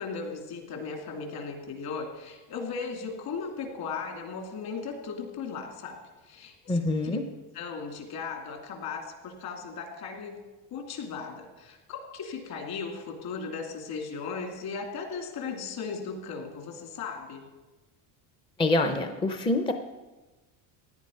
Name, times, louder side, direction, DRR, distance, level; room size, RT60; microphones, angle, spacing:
voice 1, 0.0-6.0 6.3-6.8 7.0-7.2 7.5-10.4 10.7-17.5, left 5 dB, 55° left, 3 dB, 2.7 m, -37 dB
voice 2, 6.7-7.2 18.6-19.7, left 2 dB, 10° left, 7 dB, 0.5 m, -25 dB
16.5 x 10.0 x 5.5 m, 1.2 s
cardioid pair, 155°, 45 cm